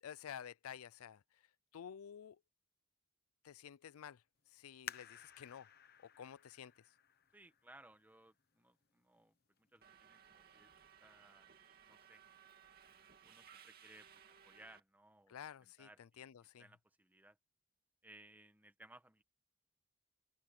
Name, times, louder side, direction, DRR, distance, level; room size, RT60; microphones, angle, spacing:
voice 1, 0.0-1.2 1.7-2.4 3.4-4.2 4.5-5.7 6.0-6.7 15.3-16.7, left 8 dB, 85° left, 0.4 m, -51 dB
sound 1, 4.9-8.2 8.8-8.9 9.6-9.9 10.3-10.4, left 9 dB, 45° left, 1.0 m, -54 dB
voice 2, 7.3-10.7 11.0-11.5 11.9-12.2 13.2-14.1 14.4-15.3 15.6-16.2 16.6-17.4 18.0-19.2, right 1 dB, 10° right, 1.2 m, -62 dB
Subway metro underground, 9.8-14.8, right 8 dB, 45° right, 2.7 m, -62 dB
head